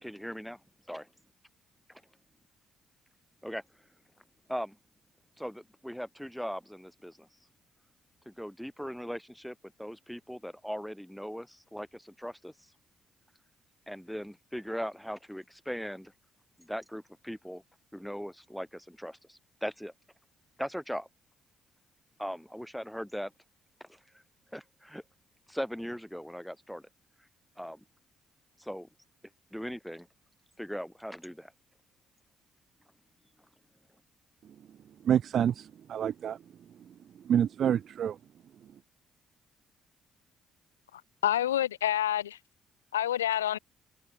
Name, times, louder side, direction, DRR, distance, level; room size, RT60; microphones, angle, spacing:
voice 1, 0.0-0.6 0.9-1.1 1.9-2.0 3.4-3.6 4.5-4.8 5.4-7.3 8.3-12.5 13.9-16.1 16.6-17.6 17.9-19.9 20.6-21.1 22.2-23.3 23.8-24.0 24.5-25.0 25.5-26.8 27.6-27.8 28.6-28.9 29.5-30.1 30.6-31.5, equal, ahead, 3.4 m, -39 dB
voice 2, 35.1-36.4 37.3-38.2, right 9 dB, 55° right, 0.4 m, -27 dB
voice 3, 41.2-42.4 42.9-43.6, left 11 dB, 85° left, 0.3 m, -27 dB
open air
hypercardioid pair, 45°, 0 cm